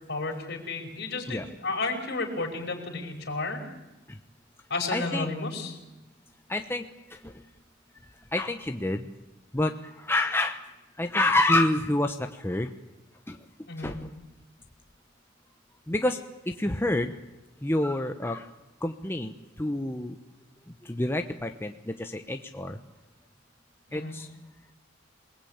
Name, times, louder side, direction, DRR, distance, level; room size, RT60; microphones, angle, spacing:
voice 1, 0.1-3.7 4.7-5.8 13.7-14.0 23.9-24.2, left 3 dB, 60° left, 2 dB, 5.3 m, -32 dB
voice 2, 4.9-5.3 6.5-6.8 8.3-9.0 9.5-9.7 10.1-10.6 11.0-12.1 12.4-12.7 13.8-13.9 15.9-16.2 16.6-17.1 17.6-18.4 18.8-19.3 19.6-20.1 20.9-21.7 22.0-22.8 23.9-24.3, left 1 dB, 10° left, 5 dB, 1.0 m, -27 dB
27.5 x 19.5 x 8.9 m, 1.0 s
head